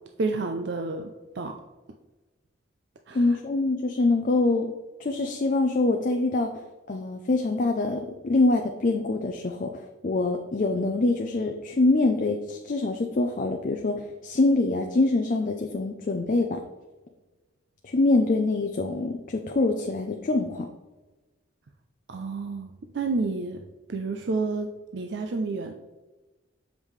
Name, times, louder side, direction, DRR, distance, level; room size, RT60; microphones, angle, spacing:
voice 1, 0.2-1.6 3.1-3.4 22.1-23.6 23.9-25.7, right 3 dB, 60° right, 5 dB, 0.4 m, -30 dB
voice 2, 3.1-4.7 5.0-16.6 17.8-20.7, left 2 dB, 40° left, 4 dB, 0.4 m, -25 dB
7.3 x 5.1 x 3.2 m, 1.2 s
head